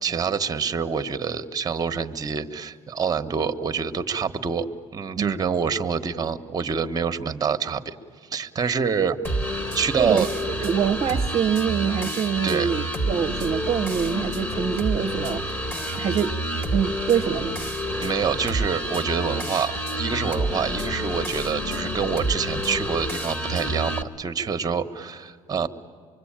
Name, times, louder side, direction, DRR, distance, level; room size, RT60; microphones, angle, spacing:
voice 1, 0.0-4.7 4.9-8.0 8.3-9.2 9.7-10.3 12.4-12.7 18.0-25.7, right 6 dB, 30° right, 9 dB, 1.1 m, -26 dB
sound 1, 9.2-24.0, equal, 15° left, 1.7 m, -28 dB
voice 2, 10.6-15.6 15.9-16.3 16.7-17.6, right 8 dB, 50° right, 5 dB, 0.7 m, -25 dB
24.5 x 23.5 x 8.8 m, 2.1 s
cardioid pair, 110°, 13 cm